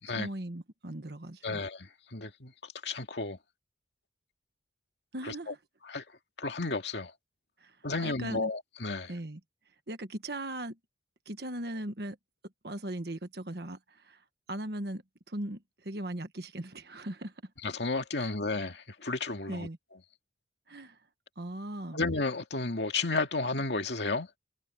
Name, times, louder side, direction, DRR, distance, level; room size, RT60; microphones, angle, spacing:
voice 1, 0.0-1.6 5.1-5.6 7.6-8.5 9.1-9.4 9.9-10.8 11.2-12.2 12.6-14.2 14.5-17.3 18.2-18.3 19.5-19.8 20.7-21.0 21.4-22.0, right 1 dB, 65° right, 1.5 m, -39 dB
voice 2, 1.4-2.5 2.8-3.4 5.3-5.4 5.9-6.0 6.4-7.1 7.8-9.1 17.6-19.7 21.9-24.3, left 3 dB, 80° left, 2.2 m, -32 dB
head